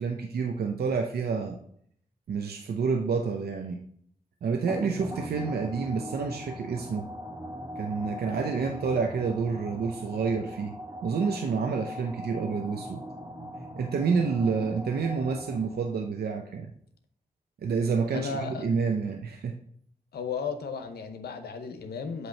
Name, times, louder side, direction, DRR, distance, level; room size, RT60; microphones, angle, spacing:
voice 1, 0.0-1.6 2.3-3.8 4.4-7.1 7.8-10.8 11.0-13.0 13.8-16.7 17.6-19.6, right 5 dB, 75° right, 4 dB, 0.7 m, -29 dB
sound 1, 4.7-16.0, equal, 20° right, 1.4 m, -40 dB
voice 2, 18.1-18.7 20.1-22.3, left 5 dB, 90° left, 7 dB, 0.8 m, -34 dB
7.9 x 3.0 x 5.3 m, 0.64 s
cardioid pair, 55°, 16 cm